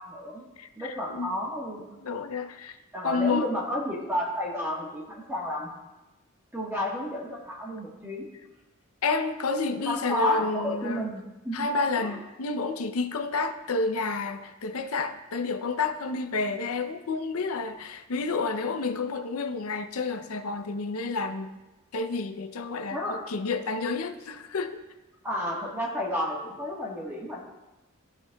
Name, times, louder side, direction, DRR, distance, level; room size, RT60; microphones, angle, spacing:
voice 1, 0.0-0.5 0.8-2.0 2.9-5.7 6.5-8.3 9.8-11.7 11.9-12.2 22.9-23.3 25.2-27.4, equal, 10° right, 1.3 m, -32 dB
voice 2, 0.6-1.4 2.0-2.8 3.0-3.5 9.0-11.1 11.5-21.5 21.9-24.8, left 3 dB, 85° left, 0.6 m, -30 dB
14.5 x 5.7 x 2.3 m
head